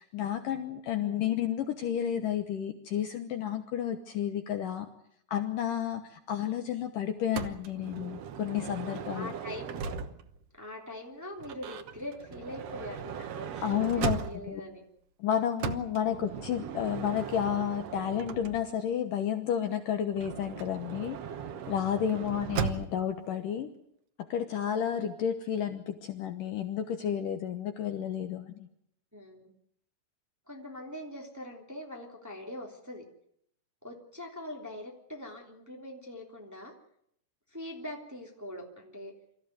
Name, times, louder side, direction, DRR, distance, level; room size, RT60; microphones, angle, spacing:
voice 1, 0.0-4.9 5.3-9.3 13.6-14.7 15.2-21.2 21.7-23.7 24.3-28.6, left 9 dB, 65° left, 7 dB, 2.4 m, -31 dB
voice 2, 1.0-1.3 9.1-10.0 10.5-14.8 16.0-16.1 22.1-22.7 29.1-29.5 30.5-33.1 33.8-36.7 37.5-39.1, left 1 dB, 5° right, 1 dB, 2.5 m, -43 dB
Motor vehicle (road) / Sliding door, 7.3-10.4 11.4-14.7 15.6-18.9 20.1-23.1, right 7 dB, 80° right, 1.4 m, -38 dB
25.5 x 14.5 x 9.4 m, 0.72 s
omnidirectional pair, 4.6 m